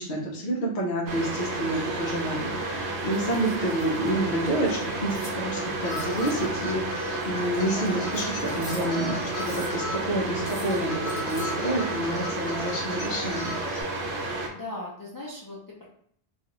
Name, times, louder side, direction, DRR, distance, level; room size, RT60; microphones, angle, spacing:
voice 1, 0.0-13.5, right 1 dB, 55° left, -5 dB, 0.9 m, -29 dB
sound 1, 1.1-14.5, right 2 dB, 80° right, 0.9 m, -31 dB
sound 2, 3.0-5.4 5.8-6.6 7.2-9.0 9.3-9.7 10.4-11.5, equal, 15° right, 1.1 m, -46 dB
sound 3, 5.8-13.8, left 1 dB, 80° left, 1.2 m, -37 dB
voice 2, 14.5-15.8, left 2 dB, 30° left, -4 dB, 0.4 m, -38 dB
3.2 x 2.4 x 3.0 m, 0.65 s
omnidirectional pair, 1.1 m